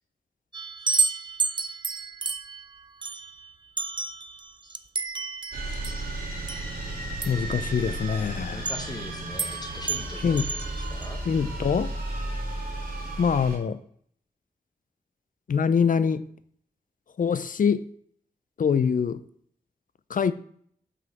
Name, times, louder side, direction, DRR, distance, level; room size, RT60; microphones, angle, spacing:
sound 1, 0.5-7.5 8.7-9.0 9.4-9.6 9.9-11.1, right 4 dB, 30° right, 0.4 m, -31 dB
sound 2, 5.5-13.6, right 1 dB, 65° right, 2.9 m, -34 dB
voice 1, 7.3-8.7 10.2-10.5 11.3-11.9 13.2-13.8 15.5-16.3 17.2-17.9 18.6-19.2 20.1-20.3, left 6 dB, 55° left, 0.4 m, -24 dB
voice 2, 8.5-11.2, left 1 dB, 25° left, 0.8 m, -41 dB
6.1 x 5.5 x 5.8 m
wide cardioid pair, 110°, 16 cm